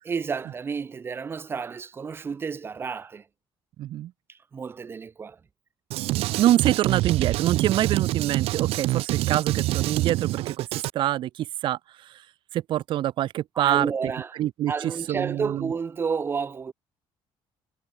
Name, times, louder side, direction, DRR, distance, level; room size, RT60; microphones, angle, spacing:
voice 1, 0.0-3.3 4.3-5.4 13.5-14.3 14.7-16.7, right 5 dB, 20° right, 3.0 m, -31 dB
voice 2, 3.8-4.1 6.4-10.7 10.9-11.8 12.5-13.9 14.4-14.7 15.1-15.7, right 13 dB, 55° right, 1.9 m, -25 dB
Drum kit, 5.9-10.9, right 17 dB, 75° right, 1.6 m, -26 dB
cardioid pair, 180°, 10 cm